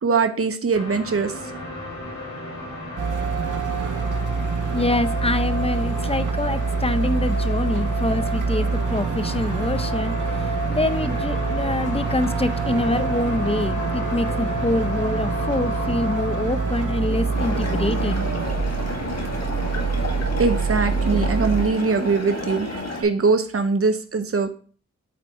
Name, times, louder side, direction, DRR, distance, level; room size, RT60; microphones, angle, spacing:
voice 1, 0.0-1.3 20.4-24.5, right 4 dB, 50° right, 8 dB, 0.8 m, -22 dB
sound 1, 0.7-20.7, left 1 dB, 80° left, 4.1 m, -34 dB
sound 2, 3.0-21.7, right 4 dB, 85° right, 0.7 m, -25 dB
voice 2, 4.7-10.1 10.7-18.3, left 2 dB, 20° left, 12 dB, 0.7 m, -25 dB
sound 3, 17.3-23.0, left 2 dB, 60° left, 2.1 m, -30 dB
8.7 x 4.1 x 4.6 m, 0.42 s
cardioid pair, 40°, 30 cm